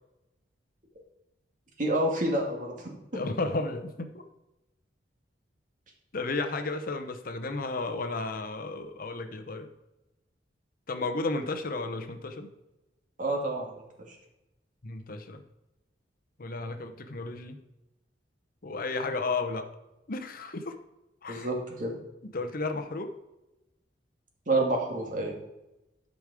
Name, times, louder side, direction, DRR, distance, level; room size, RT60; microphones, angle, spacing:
voice 1, 1.8-2.9 13.2-13.8 14.1-14.2 21.3-22.0 24.5-25.3, right 2 dB, 45° right, 1 dB, 2.0 m, -28 dB
voice 2, 3.1-4.2 6.1-9.7 10.9-12.5 14.8-15.4 16.4-17.6 18.6-19.7 20.1-20.8 21.2-21.5 22.3-23.1, left 3 dB, 50° left, 7 dB, 0.8 m, -33 dB
11.5 x 5.3 x 4.8 m, 0.96 s
head